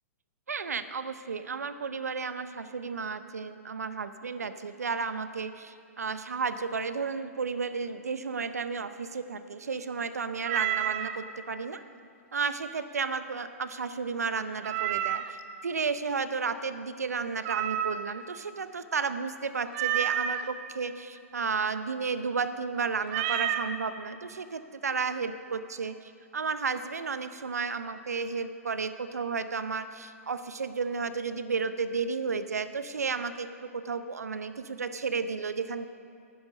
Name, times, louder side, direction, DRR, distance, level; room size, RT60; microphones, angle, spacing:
voice 1, 0.5-11.8 12.3-15.4 15.6-35.9, right 5 dB, 85° right, 12 dB, 0.7 m, -33 dB
Meow, 10.4-11.2 14.6-15.4 17.4-18.2 19.7-20.4 23.1-23.7, right 11 dB, 40° right, 0.6 m, -30 dB
11.0 x 9.7 x 5.3 m, 2.4 s
hypercardioid pair, 125°, 8 cm